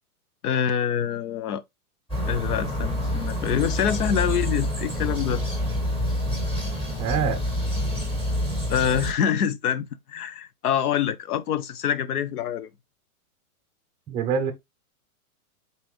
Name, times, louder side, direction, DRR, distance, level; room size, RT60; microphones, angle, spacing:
voice 1, 0.4-1.6 2.3-5.4 8.7-12.7, left 8 dB, 85° left, 0.9 m, -25 dB
sound 1, 2.1-9.1, left 1 dB, 10° left, 1.6 m, -27 dB
voice 2, 7.0-7.4 14.1-14.5, right 7 dB, 10° right, 0.5 m, -25 dB
4.0 x 4.0 x 3.0 m
hypercardioid pair, 155°, 44 cm